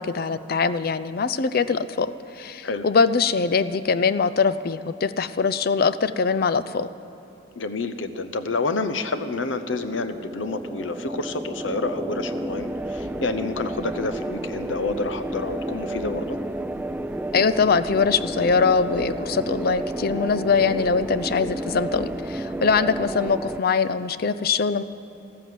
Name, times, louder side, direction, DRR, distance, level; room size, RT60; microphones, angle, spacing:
voice 1, 0.0-6.9 17.3-24.8, left 5 dB, 55° left, 13 dB, 0.5 m, -22 dB
voice 2, 7.6-16.4, left 3 dB, 85° left, 11 dB, 0.9 m, -29 dB
sound 1, 8.1-23.6, right 1 dB, 10° right, 0.3 m, -32 dB
13.5 x 13.5 x 7.7 m, 2.9 s
head